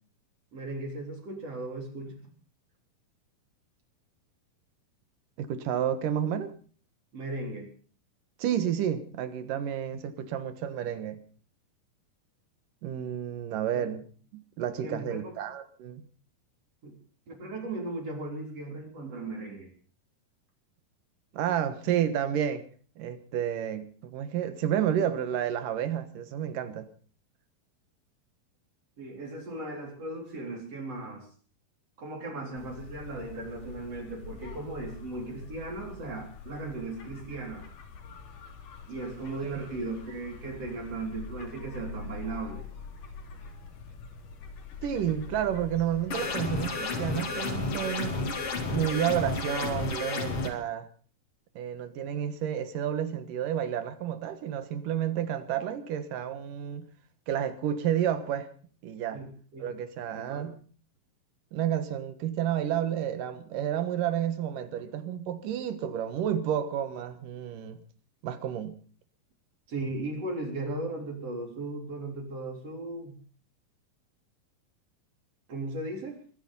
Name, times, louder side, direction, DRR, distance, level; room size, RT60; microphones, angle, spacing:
voice 1, 0.5-2.1 7.1-7.7 13.7-13.9 14.8-15.4 16.8-17.0 17.3-19.7 29.0-31.3 32.0-37.7 38.9-42.6 59.1-59.3 59.5-59.7 60.1-60.5 69.7-73.2 75.5-76.2, right 2 dB, 45° right, 4.6 m, -37 dB
voice 2, 5.4-6.5 8.4-11.2 12.8-14.0 14.3-16.0 21.3-22.6 23.0-26.9 39.6-39.7 44.8-48.2 48.7-50.9 51.6-56.9 57.3-58.5 58.8-59.2 59.6-60.6 61.5-67.8 68.2-68.8, right 10 dB, 70° right, 2.9 m, -30 dB
sound 1, 32.5-49.9, left 5 dB, 65° left, 3.8 m, -45 dB
sound 2, 46.1-50.5, left 3 dB, 45° left, 3.0 m, -31 dB
23.0 x 9.9 x 5.4 m
omnidirectional pair, 4.1 m